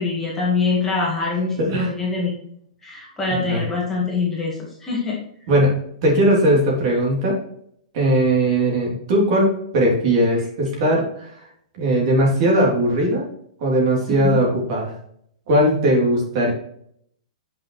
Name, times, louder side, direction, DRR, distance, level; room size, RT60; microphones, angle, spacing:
voice 1, 0.0-2.3 2.8-5.2 14.2-14.4, left 4 dB, 10° left, -5 dB, 1.8 m, -24 dB
voice 2, 6.0-7.4 7.9-11.3 11.8-13.3 13.6-14.9 15.5-16.5, right 1 dB, 45° right, -2 dB, 3.3 m, -19 dB
9.3 x 6.0 x 3.2 m, 0.67 s
hypercardioid pair, 160°, 4 cm